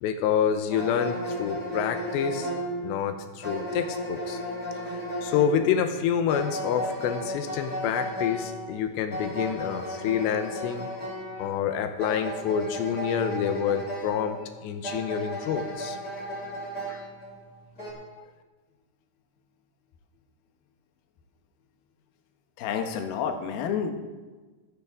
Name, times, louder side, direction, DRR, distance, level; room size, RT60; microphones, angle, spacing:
voice 1, 0.0-2.5 2.8-4.4 4.9-10.9 11.4-16.0 16.9-17.0, left 8 dB, 90° left, 8 dB, 3.0 m, -28 dB
sound 1, 0.7-17.9, equal, 20° left, 5.5 m, -35 dB
voice 2, 22.6-23.9, left 7 dB, 70° left, 5 dB, 2.8 m, -29 dB
23.0 x 9.9 x 3.6 m, 1.3 s
omnidirectional pair, 4.9 m